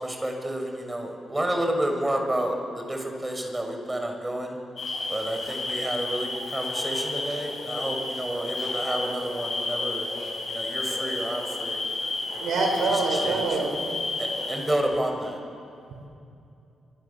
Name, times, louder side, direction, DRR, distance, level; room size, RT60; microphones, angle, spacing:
voice 1, 0.0-4.6 5.1-10.1 10.5-11.8 12.2-12.4 13.1-13.4 14.2-15.4, right 1 dB, 20° right, 3 dB, 7.0 m, -30 dB
sound 1, 4.8-14.8, left 2 dB, 60° left, 7.7 m, -31 dB
voice 2, 12.4-13.7, right 3 dB, 80° right, 2 dB, 5.7 m, -25 dB
27.0 x 24.0 x 7.4 m, 2.6 s
supercardioid pair, 45°, 0 cm